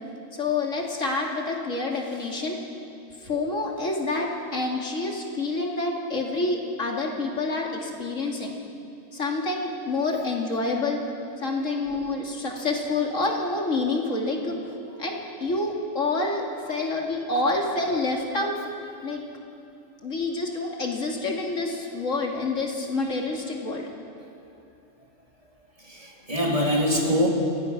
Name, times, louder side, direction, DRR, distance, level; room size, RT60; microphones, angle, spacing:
voice 1, 0.4-2.6 3.2-8.5 9.1-11.0 11.4-14.5 15.0-18.6 19.0-19.2 20.0-23.9, left 3 dB, 80° left, 0 dB, 2.9 m, -27 dB
voice 2, 14.7-15.1 16.7-16.9 24.4-24.5 25.8-27.3, equal, 25° right, -2 dB, 3.4 m, -25 dB
30.0 x 16.5 x 6.1 m, 2.6 s
omnidirectional pair, 1.3 m